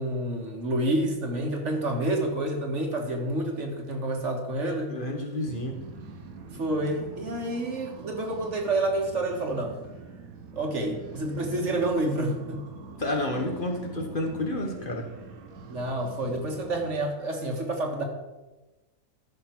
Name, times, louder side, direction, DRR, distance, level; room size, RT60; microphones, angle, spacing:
voice 1, 0.0-5.0 6.5-9.7 10.5-12.7 15.7-18.0, right 1 dB, 60° right, 2 dB, 1.8 m, -29 dB
voice 2, 4.9-5.8 13.0-15.1, left 1 dB, 40° left, 2 dB, 1.4 m, -30 dB
sound 1, 5.4-16.9, right 4 dB, 85° right, 1.5 m, -45 dB
13.5 x 6.1 x 4.6 m, 1.1 s
omnidirectional pair, 1.4 m